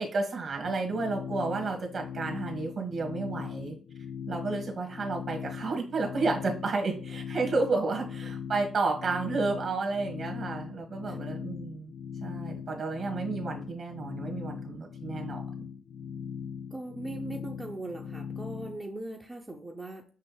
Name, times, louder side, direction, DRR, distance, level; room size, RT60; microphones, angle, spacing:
voice 1, 0.0-3.7 4.3-11.9 12.2-15.7, right 3 dB, 55° right, 3 dB, 1.4 m, -31 dB
sound 1, 0.6-18.8, left 7 dB, 65° left, 0.5 m, -40 dB
voice 2, 16.7-20.0, right 2 dB, 15° right, 0 dB, 0.7 m, -40 dB
6.5 x 2.6 x 2.2 m, 0.42 s
cardioid pair, 85°, 0 cm